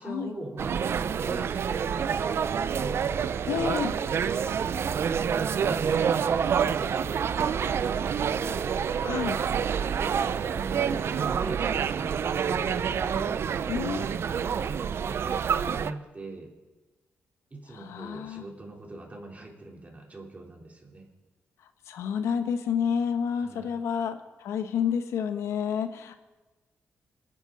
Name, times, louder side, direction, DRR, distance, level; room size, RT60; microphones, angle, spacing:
voice 1, 0.0-3.1 4.2-8.8 9.8-13.4 14.2-16.5 17.5-21.1 23.4-23.8, right 2 dB, 30° right, 0 dB, 3.8 m, -41 dB
sound 1, 0.6-15.9, right 7 dB, 60° right, 0.5 m, -27 dB
voice 2, 3.5-3.9 9.0-9.4 13.7-14.0 17.7-18.5 21.9-26.2, left 7 dB, 90° left, 8 dB, 1.0 m, -29 dB
23.0 x 9.8 x 4.1 m, 1.2 s
cardioid pair, 70°, 5 cm